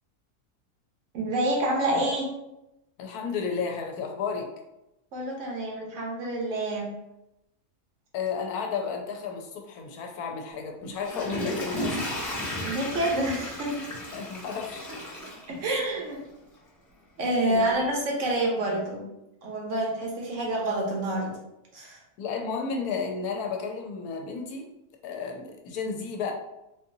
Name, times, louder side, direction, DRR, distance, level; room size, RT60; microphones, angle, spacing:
voice 1, 1.1-2.3 5.1-6.9 12.6-13.8 15.1-15.2 15.5-16.2 17.2-19.0 19.4-21.3 21.7-22.0, right 1 dB, 55° right, -2 dB, 1.1 m, -28 dB
voice 2, 3.0-4.5 8.1-12.0 14.1-15.1 17.4-17.7 22.2-24.7 25.0-26.3, left 5 dB, 75° left, 2 dB, 1.1 m, -32 dB
Water / Toilet flush, 10.8-16.1 16.6-16.7, left 1 dB, 15° left, 0.9 m, -34 dB
4.0 x 2.7 x 2.6 m, 0.90 s
omnidirectional pair, 1.6 m